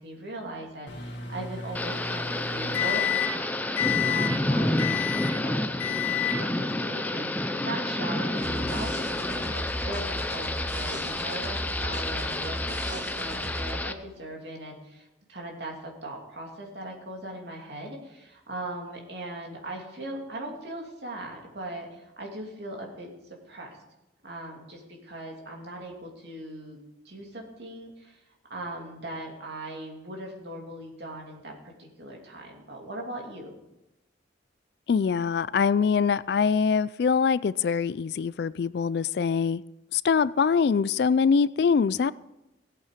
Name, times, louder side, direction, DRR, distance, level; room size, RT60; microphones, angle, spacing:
voice 1, 0.0-23.1 23.5-23.8 24.2-26.8 27.0-28.2 28.5-33.6, right 1 dB, 60° right, 0 dB, 2.8 m, -39 dB
Microwave oven, 0.9-3.4 3.8-4.3 4.8-5.4 5.8-6.4, left 10 dB, 75° left, 2.0 m, -30 dB
Thunder / Rain, 1.7-13.9, left 1 dB, 10° left, 0.5 m, -30 dB
sound 1, 8.4-13.7, equal, 85° right, 3.2 m, -36 dB
voice 2, 34.9-39.6 39.9-42.1, left 6 dB, 55° left, 19 dB, 0.3 m, -23 dB
16.5 x 8.4 x 5.1 m, 0.94 s
head